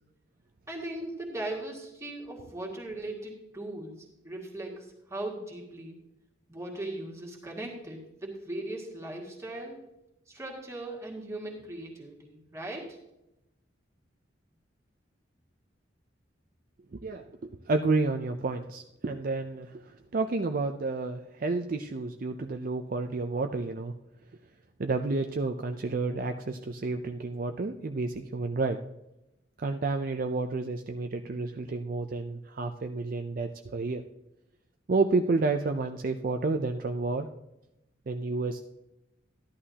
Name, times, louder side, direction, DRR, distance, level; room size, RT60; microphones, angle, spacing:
voice 1, 0.7-6.0 6.5-9.8 10.3-13.0, right 1 dB, 15° right, -1 dB, 2.0 m, -39 dB
voice 2, 16.9-23.9 24.8-28.8 29.6-34.0 34.9-37.3 38.1-38.6, right 3 dB, 45° right, 6 dB, 0.5 m, -30 dB
13.0 x 11.0 x 2.8 m, 0.90 s
head